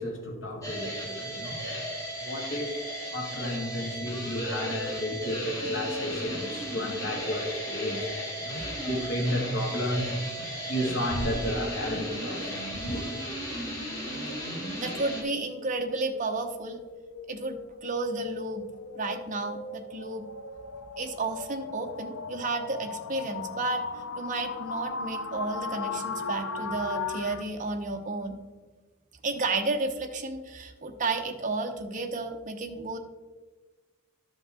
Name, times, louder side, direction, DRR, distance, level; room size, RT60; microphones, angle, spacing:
voice 1, 0.0-1.6 2.2-2.7 3.1-10.1 10.7-13.0, left 1 dB, 65° left, -1 dB, 1.8 m, -32 dB
sound 1, 0.6-15.2, equal, 15° left, 1.9 m, -35 dB
sound 2, 11.1-12.7, equal, 50° left, 2.0 m, -38 dB
sound 3, 14.2-27.4, left 4 dB, 80° left, 0.6 m, -38 dB
voice 2, 14.8-16.8 17.3-18.7 18.9-20.3 21.0-23.8 24.2-28.4 29.2-33.0, right 3 dB, 40° right, 4 dB, 0.8 m, -32 dB
12.5 x 5.4 x 3.6 m, 1.3 s
head